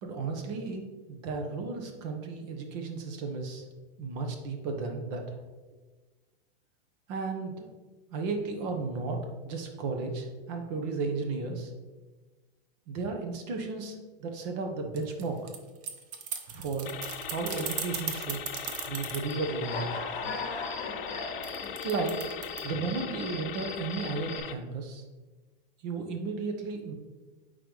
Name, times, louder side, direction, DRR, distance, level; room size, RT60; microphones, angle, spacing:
voice 1, 0.0-3.6 4.0-5.3 7.1-7.6 8.1-9.2 9.4-11.7 12.9-15.4 16.5-16.9 17.3-18.4 18.9-20.0 21.8-22.2 22.6-25.0 25.8-26.9, right 4 dB, 45° right, 4 dB, 1.1 m, -34 dB
sound 1, 15.0-19.3 21.4-22.6, right 7 dB, 25° right, 0.6 m, -36 dB
sound 2, 16.8-24.5, left 9 dB, 60° left, 0.6 m, -40 dB
Human voice / Cricket, 19.2-24.4, left 3 dB, 25° left, 1.1 m, -39 dB
8.7 x 4.0 x 3.2 m, 1.3 s
hypercardioid pair, 140°, 30 cm